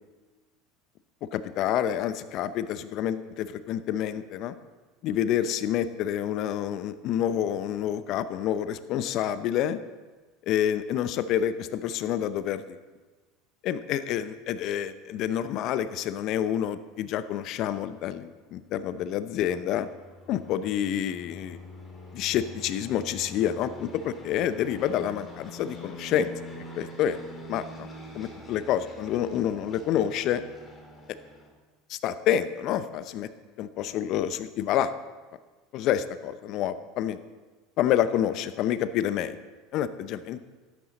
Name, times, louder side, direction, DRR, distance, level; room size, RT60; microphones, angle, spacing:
voice 1, 1.3-4.5 5.0-9.8 10.5-12.8 13.6-19.9 20.3-21.6 22.1-26.3 26.8-27.2 27.5-27.9 28.1-30.4 31.9-33.3 33.6-34.9 35.7-37.2 37.8-39.3 39.7-40.4, left 10 dB, 55° left, 13 dB, 0.6 m, -28 dB
sound 1, 18.2-31.5, equal, 25° left, 3.0 m, -45 dB
12.0 x 9.7 x 4.1 m, 1.3 s
hypercardioid pair, 85°, 0 cm